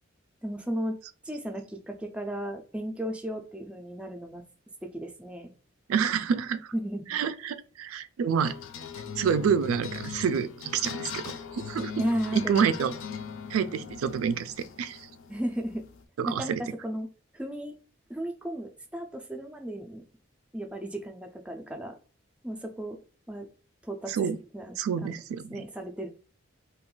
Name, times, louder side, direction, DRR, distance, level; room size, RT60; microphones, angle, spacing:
voice 1, 0.4-1.0 1.2-4.4 4.8-5.5 6.7-7.1 12.0-12.7 15.3-15.9 16.3-17.1 17.3-17.8 18.1-20.0 20.5-22.0 22.4-23.0 23.3-23.5 23.8-25.1 25.5-26.1, equal, 5° right, 0.3 m, -34 dB
voice 2, 5.9-6.6 7.1-8.5 9.2-12.0 12.3-12.9 13.5-15.0 16.2-16.6 24.1-24.4 24.8-25.6, right 7 dB, 85° right, 0.3 m, -28 dB
sound 1, 8.4-16.0, left 6 dB, 70° left, 0.4 m, -40 dB
2.4 x 2.3 x 3.6 m
head